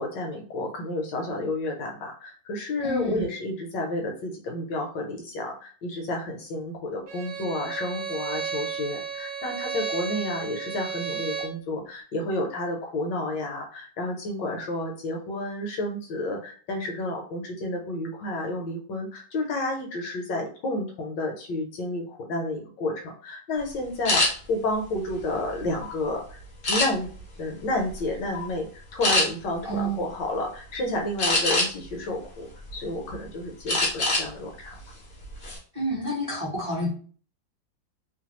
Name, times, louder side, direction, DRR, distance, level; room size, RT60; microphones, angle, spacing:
voice 1, 0.0-26.4 26.7-27.1 27.4-34.8, left 1 dB, 70° left, 2 dB, 1.2 m, -31 dB
voice 2, 2.8-3.3 29.6-30.0 35.7-36.9, equal, 25° right, -7 dB, 0.7 m, -29 dB
Bowed string instrument, 7.1-11.6, right 6 dB, 75° right, 1.1 m, -33 dB
sound 1, 24.0-24.3 24.9-25.9 26.6-27.2 27.8-28.0 28.3-28.5 29.0-29.2 31.2-31.9 32.4-33.1 33.7-34.3 34.6-34.8 35.2-35.6, left 2 dB, 55° left, 0.6 m, -24 dB
3.1 x 2.2 x 2.9 m, 0.43 s
omnidirectional pair, 2.1 m